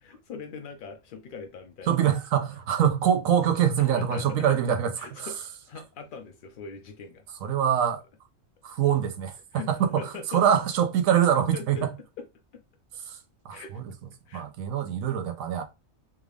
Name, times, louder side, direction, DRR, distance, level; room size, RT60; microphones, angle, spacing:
voice 1, 0.0-2.1 3.8-4.6 5.0-5.4 5.7-7.2 9.5-10.4 11.5-11.9 12.2-12.3 12.5-12.6 13.5-13.8 14.3-14.4, left 5 dB, 80° left, 0.4 m, -41 dB
voice 2, 1.9-4.9 5.2-5.3 7.4-8.0 8.6-11.9 13.1-13.2 13.4-13.9 14.3-15.6, right 9 dB, 75° right, 1.1 m, -24 dB
3.5 x 2.4 x 3.3 m
omnidirectional pair, 1.4 m